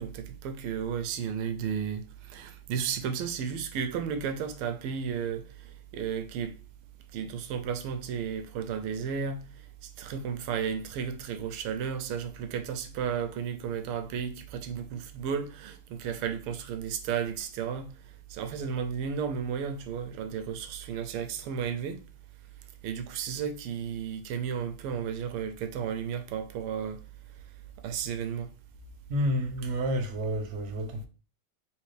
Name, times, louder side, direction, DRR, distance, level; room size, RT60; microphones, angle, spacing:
voice 1, 0.0-6.6 7.1-9.5 9.8-17.9 18.3-22.0 22.8-27.0 27.8-28.5, right 7 dB, 85° right, 1.5 m, -33 dB
voice 2, 29.1-31.1, equal, 65° right, 0.7 m, -29 dB
4.3 x 3.4 x 3.2 m
omnidirectional pair, 2.4 m